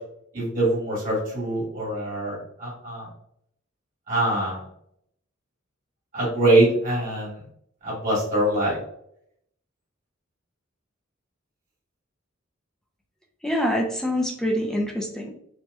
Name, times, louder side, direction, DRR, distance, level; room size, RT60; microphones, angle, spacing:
voice 1, 0.3-3.1 4.1-4.6 6.1-7.4 7.8-8.8, right 1 dB, 40° right, -6 dB, 1.2 m, -23 dB
voice 2, 13.4-15.3, equal, 5° left, 1 dB, 0.4 m, -25 dB
2.9 x 2.1 x 3.3 m, 0.71 s
head